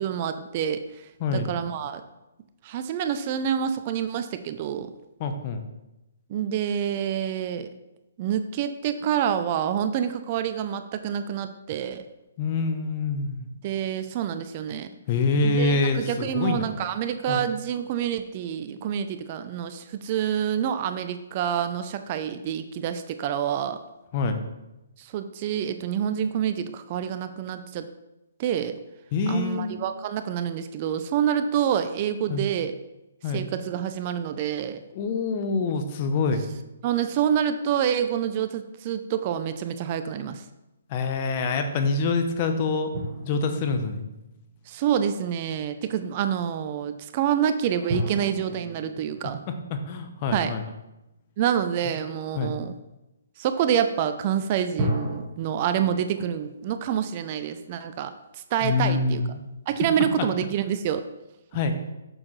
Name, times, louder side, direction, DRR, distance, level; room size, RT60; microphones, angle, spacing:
voice 1, 0.0-2.0 2.6-4.9 6.3-7.7 8.2-12.0 13.6-14.9 15.4-23.8 25.0-27.9 28.4-28.8 29.3-32.7 33.3-34.8 36.8-40.4 44.7-49.4 50.3-50.5 51.4-52.7 53.4-58.1 58.5-59.2 59.7-61.0, right 9 dB, 40° right, 10 dB, 0.4 m, -27 dB
voice 2, 1.2-1.5 5.2-5.6 12.4-13.5 15.1-16.8 17.3-17.5 24.1-24.4 29.1-29.8 32.3-32.5 33.2-33.5 34.9-36.4 40.9-42.9 43.2-44.0 49.5-50.6 52.3-52.6 58.6-59.4 60.2-60.3 61.5-61.8, left 3 dB, 35° left, 6 dB, 0.8 m, -26 dB
sound 1, 42.9-44.9 47.9-51.2 54.8-55.2, equal, 20° right, 1.8 m, -33 dB
6.5 x 6.0 x 3.2 m, 0.97 s
hypercardioid pair, 140°, 0 cm